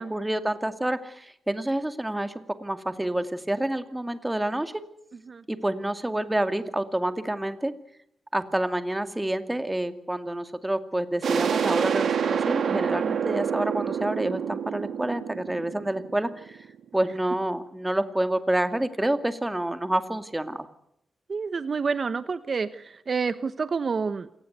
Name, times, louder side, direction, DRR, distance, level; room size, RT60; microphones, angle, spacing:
voice 1, 0.0-4.7 5.5-7.7 8.3-16.6 16.9-20.7, right 1 dB, 15° right, 9 dB, 2.4 m, -28 dB
sound 1, 11.2-16.7, right 7 dB, 80° right, 2.1 m, -27 dB
voice 2, 12.7-13.2 21.3-24.3, right 5 dB, 55° right, 13 dB, 1.1 m, -29 dB
27.5 x 19.0 x 8.2 m, 0.76 s
cardioid pair, 70°, 0 cm